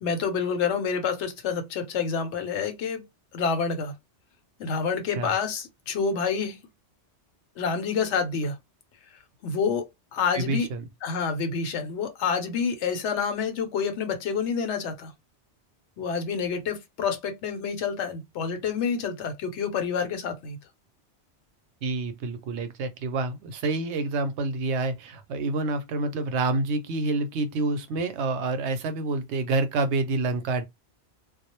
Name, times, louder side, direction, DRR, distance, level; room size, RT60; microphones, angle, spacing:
voice 1, 0.0-3.0 3.3-3.9 4.6-6.6 7.6-8.6 9.4-10.7 11.0-15.1 16.0-20.6, left 6 dB, 80° left, 1.0 m, -28 dB
voice 2, 10.3-10.9 21.8-30.6, right 3 dB, 80° right, 0.8 m, -28 dB
2.3 x 2.0 x 2.8 m
omnidirectional pair, 1.2 m